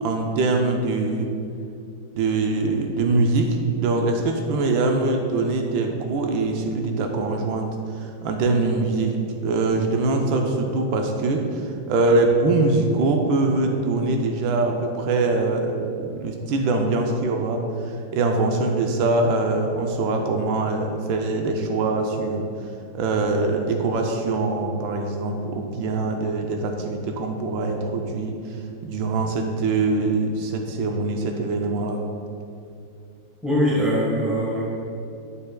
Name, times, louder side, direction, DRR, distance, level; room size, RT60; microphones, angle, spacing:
voice 1, 0.0-1.3 2.2-7.7 7.9-9.2 9.4-11.6 11.9-22.5 22.9-28.3 28.8-32.0, right 3 dB, 80° right, 3 dB, 1.3 m, -23 dB
voice 2, 33.4-34.6, equal, ahead, -5 dB, 0.9 m, -22 dB
6.9 x 6.9 x 2.2 m, 2.4 s
omnidirectional pair, 2.1 m